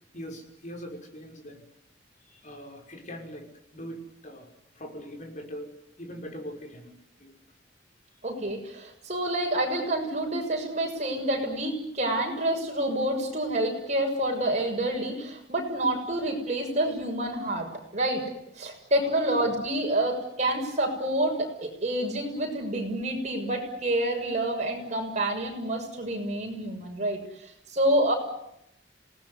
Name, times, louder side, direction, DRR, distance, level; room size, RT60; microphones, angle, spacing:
voice 1, 0.1-1.6 2.2-3.5 3.7-4.5 4.8-5.7 6.0-6.9 7.2-7.4 19.0-19.2, equal, 45° left, 2 dB, 6.0 m, -41 dB
voice 2, 8.2-17.7 17.9-18.2 18.6-28.1, right 1 dB, 40° right, 2 dB, 6.7 m, -28 dB
27.0 x 19.0 x 9.8 m, 0.80 s
head